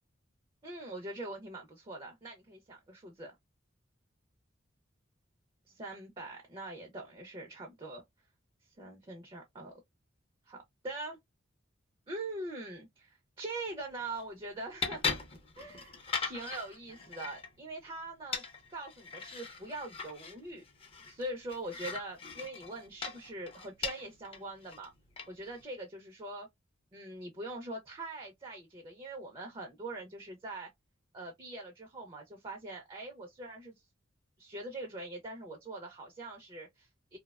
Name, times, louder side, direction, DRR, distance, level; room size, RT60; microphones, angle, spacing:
voice 1, 0.6-3.3 5.7-8.0 8.8-9.7 10.5-10.6 10.8-11.2 12.1-15.0 15.6-18.4 18.7-20.6 21.1-24.9 25.3-26.5 26.9-30.7 31.1-33.7 34.4-37.2, right 2 dB, 25° right, 0.4 m, -43 dB
sound 1, 13.7-25.6, left 5 dB, 30° left, 0.5 m, -41 dB
2.7 x 2.1 x 2.2 m
head